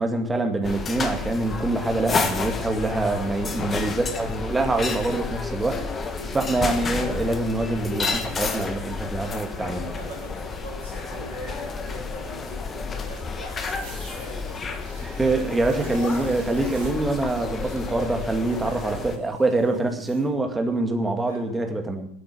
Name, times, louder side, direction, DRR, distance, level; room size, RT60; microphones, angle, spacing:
voice 1, 0.0-5.8 6.3-10.0 15.0-22.1, right 2 dB, 10° right, 4 dB, 2.1 m, -25 dB
sound 1, 0.6-19.2, left 4 dB, 20° left, 1.5 m, -31 dB
voice 2, 9.2-15.1 18.6-19.0 21.2-21.9, equal, 85° right, -6 dB, 4.7 m, -42 dB
sound 2, 13.7-20.3, right 5 dB, 60° right, 3.9 m, -49 dB
13.0 x 8.6 x 7.5 m, 0.69 s
figure-of-eight pair, 85°, 0 cm